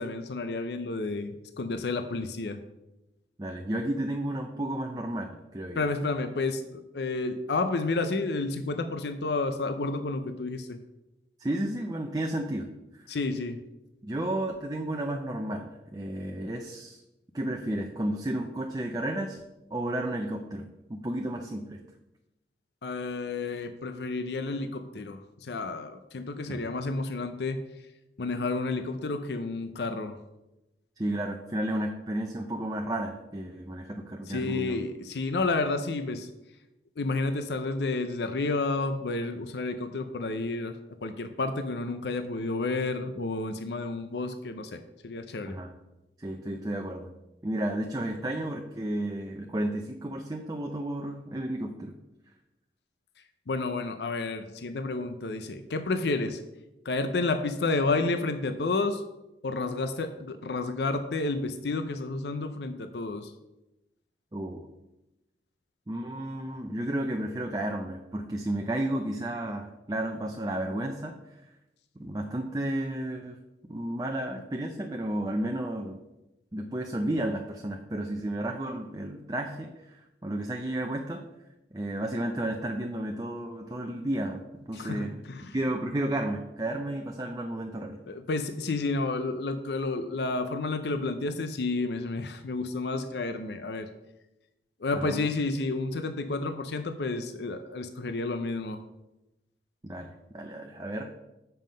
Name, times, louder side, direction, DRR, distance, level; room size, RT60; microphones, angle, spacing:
voice 1, 0.0-2.6 5.8-10.8 13.1-13.6 22.8-27.6 28.2-30.2 34.3-36.3 37.0-40.7 41.0-45.6 53.5-56.4 56.8-59.0 59.4-63.3 84.7-85.6 88.1-93.9 94.8-98.8, left 3 dB, 75° left, 9 dB, 0.5 m, -31 dB
voice 2, 3.4-5.9 11.4-12.7 13.0-13.2 14.0-17.0 17.3-19.4 19.7-21.8 26.5-26.7 31.0-34.8 45.5-45.7 46.2-47.1 47.4-51.9 64.3-64.6 65.9-71.4 72.0-73.4 73.7-76.0 76.5-81.2 81.7-84.4 84.7-85.2 85.5-88.0 94.9-95.3 99.8-101.1, right 1 dB, 20° right, 3 dB, 0.5 m, -32 dB
7.4 x 5.6 x 5.1 m, 0.95 s
head